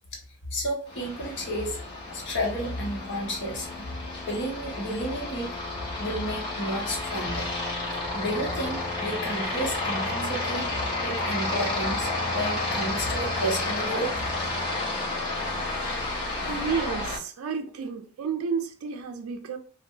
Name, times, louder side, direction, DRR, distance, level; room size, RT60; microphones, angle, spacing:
voice 1, 0.5-1.8 2.1-3.9 4.3-5.5 6.0-7.5 8.1-10.7 11.0-14.1, equal, 55° left, 0.9 m, -31 dB
Aircraft, 0.9-17.2, left 2 dB, 20° left, 1.1 m, -31 dB
voice 2, 16.5-19.6, right 6 dB, 70° right, 0.3 m, -31 dB
2.6 x 2.2 x 2.7 m
head